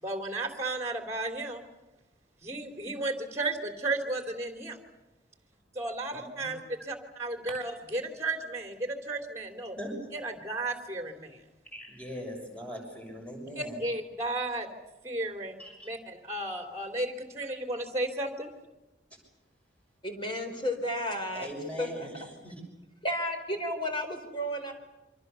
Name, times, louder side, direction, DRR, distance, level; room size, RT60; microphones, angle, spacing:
voice 1, 0.0-1.6 2.4-4.8 5.7-9.8 10.1-11.4 13.6-14.7 15.0-15.6 15.8-18.5, right 2 dB, 15° right, 5 dB, 3.1 m, -34 dB
voice 2, 11.7-13.8 15.6-15.9 21.3-22.5, equal, 5° left, 1 dB, 6.5 m, -40 dB
voice 3, 20.0-21.5 21.8-22.1 23.0-24.7, equal, 25° left, 5 dB, 4.6 m, -32 dB
28.5 x 25.5 x 6.9 m, 1.0 s
head